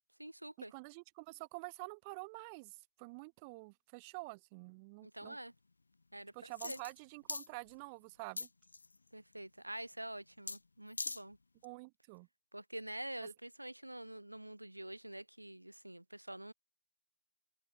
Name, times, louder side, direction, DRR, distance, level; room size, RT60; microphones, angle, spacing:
voice 1, 0.2-0.7 5.0-5.5 6.1-6.8 9.1-11.4 12.5-16.5, right 1 dB, 90° right, 3.1 m, -47 dB
voice 2, 0.7-2.7 3.0-5.4 6.3-8.5 11.6-12.3, right 29 dB, 20° right, 6.2 m, -48 dB
sound 1, 6.6-7.0 7.3-7.5 8.4-9.0 10.5-10.6 10.9-11.2 11.6-11.7, left 3 dB, 70° left, 2.2 m, -41 dB
figure-of-eight pair, 150°, 0 cm